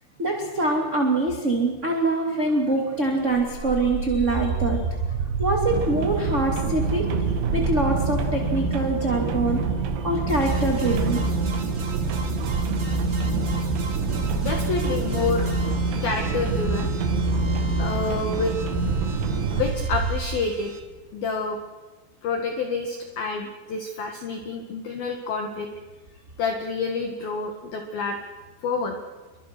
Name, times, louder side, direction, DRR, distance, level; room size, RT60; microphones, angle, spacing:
voice 1, 0.2-5.1 5.4-7.1 7.5-9.6 10.0-11.2, right 2 dB, 20° right, 1 dB, 1.9 m, -24 dB
sound 1, 3.3-20.7, right 3 dB, 65° right, 5.5 m, -26 dB
sound 2, 5.7-19.7, right 8 dB, 90° right, 4.8 m, -33 dB
sound 3, 10.3-20.8, right 3 dB, 40° right, 2.4 m, -42 dB
voice 2, 14.3-15.5 16.0-16.9 17.8-18.5 19.5-20.7 21.1-21.6 22.2-25.7 26.4-28.2 28.6-29.0, left 4 dB, 55° left, 3 dB, 3.2 m, -28 dB
29.5 x 24.5 x 6.2 m, 1.3 s
omnidirectional pair, 6.0 m